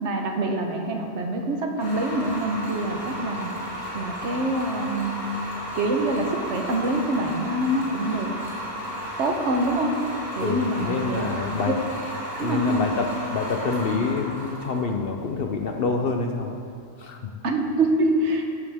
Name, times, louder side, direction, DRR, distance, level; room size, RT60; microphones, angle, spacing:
voice 1, 0.0-3.5 3.9-5.1 5.7-8.3 9.2-9.9 10.3-11.7 12.1-12.9 17.4-18.4, right 1 dB, 65° right, 3 dB, 1.2 m, -25 dB
sound 1, 1.8-16.7, equal, 40° left, 2.2 m, -34 dB
voice 2, 10.4-11.7 12.4-16.6 17.0-17.2, left 4 dB, 55° left, 4 dB, 0.7 m, -27 dB
12.0 x 8.2 x 3.5 m, 2.3 s
omnidirectional pair, 1.3 m